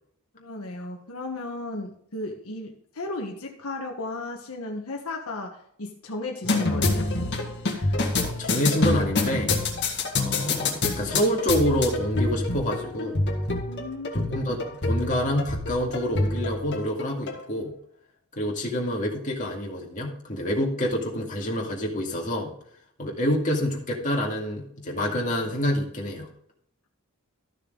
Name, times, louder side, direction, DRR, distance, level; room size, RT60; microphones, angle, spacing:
voice 1, 0.3-7.1 13.7-14.1, left 2 dB, 70° left, 1 dB, 1.3 m, -35 dB
sound 1, 6.4-17.4, left 2 dB, 50° left, 1.9 m, -27 dB
voice 2, 8.2-9.5 10.2-13.2 14.1-14.6 14.8-17.7 18.3-22.5 23.0-26.3, equal, 35° left, -1 dB, 2.2 m, -27 dB
13.5 x 6.6 x 3.9 m, 0.69 s
head